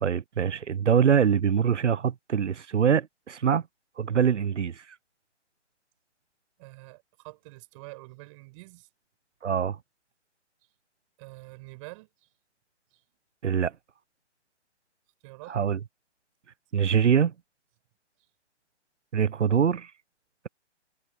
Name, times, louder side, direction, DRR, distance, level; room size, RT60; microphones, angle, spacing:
voice 1, 0.0-3.6 4.0-4.8 9.4-9.8 13.4-13.7 15.5-15.8 16.7-17.3 19.1-19.9, right 7 dB, 80° right, 1.0 m, -24 dB
voice 2, 6.6-8.9 11.2-12.3 12.9-13.0 15.2-15.6, right 25 dB, 25° right, 7.6 m, -46 dB
hypercardioid pair, 150°, 35 cm